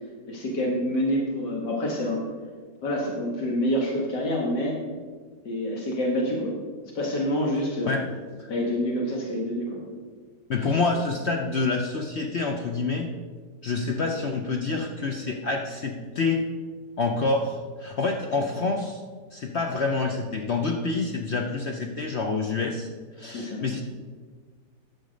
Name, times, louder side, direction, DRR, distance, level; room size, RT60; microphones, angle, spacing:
voice 1, 0.3-2.2 2.8-4.8 5.5-6.5 6.9-8.0 8.5-9.8 10.7-10.8 23.3-23.6, equal, 75° left, -2 dB, 2.1 m, -27 dB
voice 2, 10.5-13.1 13.6-16.4 17.0-19.0 19.3-22.9 23.2-23.8, left 3 dB, 55° left, 2 dB, 0.7 m, -27 dB
10.5 x 6.7 x 5.1 m, 1.5 s
omnidirectional pair, 1.9 m